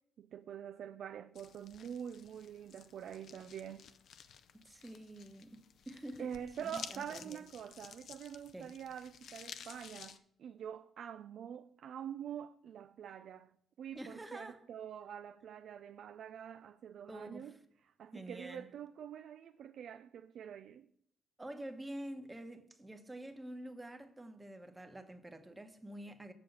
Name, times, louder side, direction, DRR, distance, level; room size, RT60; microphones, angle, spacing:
voice 1, 0.2-3.9 6.2-17.6 18.0-20.9, right 9 dB, 70° right, 0.4 m, -46 dB
sound 1, 1.3-10.2, left 8 dB, 65° left, 0.6 m, -53 dB
voice 2, 4.6-6.3 6.6-7.4 8.5-8.7 13.9-14.6 17.1-17.6 18.1-18.7 21.4-26.3, right 1 dB, 15° right, 1.1 m, -47 dB
7.6 x 6.8 x 5.6 m
cardioid pair, 90°, 0 cm